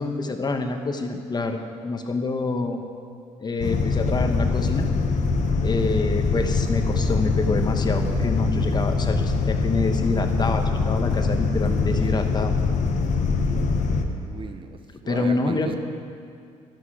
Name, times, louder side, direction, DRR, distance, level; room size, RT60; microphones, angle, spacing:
voice 1, 0.0-2.8 3.4-4.9 5.6-12.5 15.1-15.7, left 3 dB, 30° left, 5 dB, 1.2 m, -27 dB
sound 1, 3.6-14.1, left 4 dB, 65° left, 1.1 m, -23 dB
voice 2, 14.2-15.8, right 5 dB, 40° right, 8 dB, 0.7 m, -37 dB
13.0 x 12.0 x 4.9 m, 2.3 s
cardioid pair, 100°, 14 cm